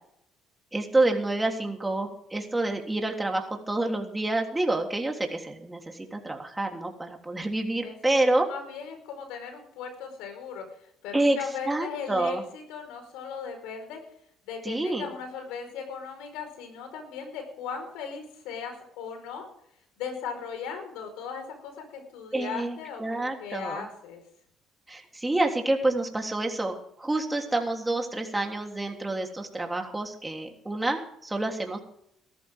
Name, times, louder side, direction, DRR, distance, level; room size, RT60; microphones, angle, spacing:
voice 1, 0.7-8.5 11.1-11.4 11.7-12.4 14.6-15.1 22.3-23.9 24.9-31.8, right 2 dB, 15° right, 2 dB, 3.4 m, -28 dB
voice 2, 7.8-10.6 11.0-14.0 14.5-19.5 20.0-24.2, left 6 dB, 85° left, 6 dB, 4.8 m, -38 dB
17.5 x 14.0 x 3.7 m, 0.70 s
cardioid pair, 90°, 0 cm